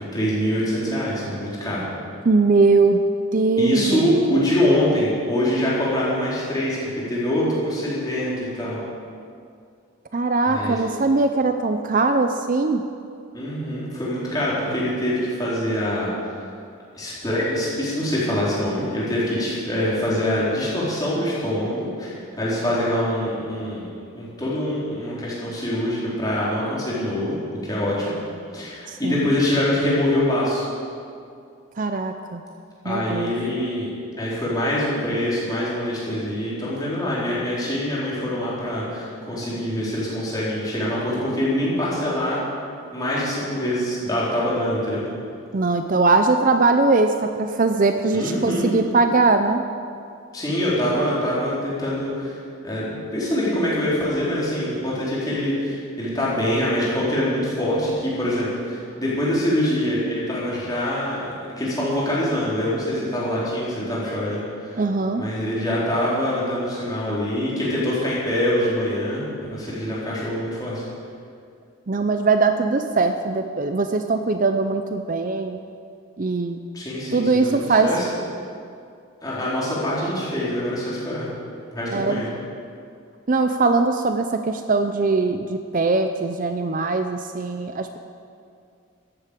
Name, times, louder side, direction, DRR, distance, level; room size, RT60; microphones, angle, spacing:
voice 1, 0.1-1.8 3.6-8.8 10.4-10.8 13.3-16.1 16.9-23.9 24.1-27.4 27.6-28.2 28.5-30.6 32.8-42.4 42.9-45.0 48.1-48.8 50.3-52.4 52.6-64.8 65.2-70.8 76.7-78.1 79.2-81.3 81.7-82.3, left 1 dB, 20° left, -7 dB, 4.0 m, -24 dB
voice 2, 2.2-3.0 3.3-4.1 10.1-12.8 28.9-29.3 31.8-32.4 32.8-33.3 45.5-49.6 64.8-65.2 71.9-75.6 76.2-76.6 77.1-77.9 81.9-82.2 83.3-88.0, right 3 dB, 40° right, 7 dB, 0.5 m, -21 dB
14.5 x 8.6 x 8.2 m, 2.4 s
head